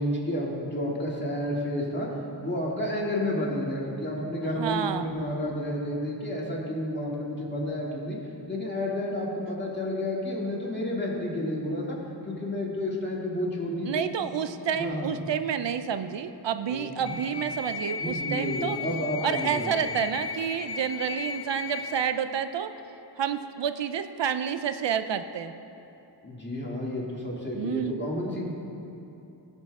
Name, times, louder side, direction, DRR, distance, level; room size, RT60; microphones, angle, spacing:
voice 1, 0.0-8.2 8.5-12.0 12.2-14.1 14.7-15.1 16.7-17.2 18.0-19.8 26.2-28.5, left 1 dB, 25° left, -4 dB, 2.6 m, -31 dB
voice 2, 4.6-5.1 13.8-18.8 19.2-22.7 23.2-25.5 27.6-28.0, right 8 dB, 80° right, 10 dB, 0.5 m, -29 dB
sound 1, 17.1-22.1, left 5 dB, 60° left, 0.8 m, -35 dB
16.5 x 6.6 x 3.6 m, 2.9 s
wide cardioid pair, 45°, 43 cm